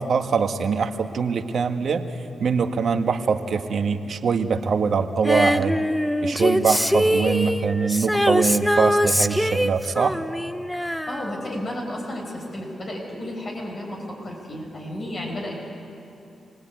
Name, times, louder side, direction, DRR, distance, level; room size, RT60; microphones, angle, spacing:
voice 1, 0.0-2.1 2.4-5.8 6.2-10.2, right 5 dB, 65° right, 6 dB, 1.7 m, -23 dB
Female singing, 5.2-11.9 12.2-12.3, equal, 5° left, 1.1 m, -23 dB
voice 2, 11.1-15.6, left 1 dB, 55° left, -1 dB, 6.8 m, -32 dB
27.5 x 19.0 x 9.2 m, 2.7 s
supercardioid pair, 45°, 0 cm